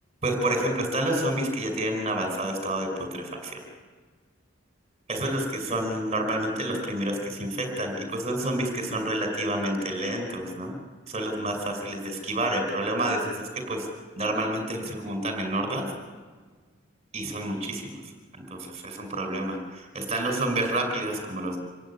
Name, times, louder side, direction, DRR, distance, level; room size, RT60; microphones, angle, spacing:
voice 1, 0.2-3.6 5.1-10.8 11.1-13.9 14.2-15.9 17.1-17.9 18.5-21.6, right 1 dB, 35° right, 4 dB, 5.3 m, -29 dB
27.0 x 15.5 x 9.7 m, 1.5 s
head